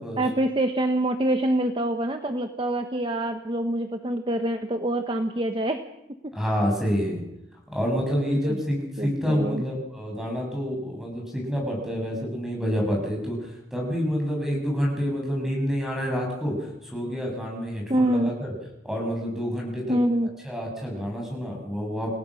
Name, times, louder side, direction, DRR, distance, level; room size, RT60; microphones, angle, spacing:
voice 1, 0.2-5.8 6.2-6.3 8.4-8.6 9.0-9.6 17.9-18.3 19.9-20.3, right 1 dB, 30° right, 7 dB, 1.1 m, -25 dB
voice 2, 6.3-7.2 7.7-13.4 13.7-18.5 18.8-20.0 20.4-22.1, equal, ahead, -1 dB, 7.8 m, -28 dB
29.0 x 18.0 x 6.5 m, 0.90 s
head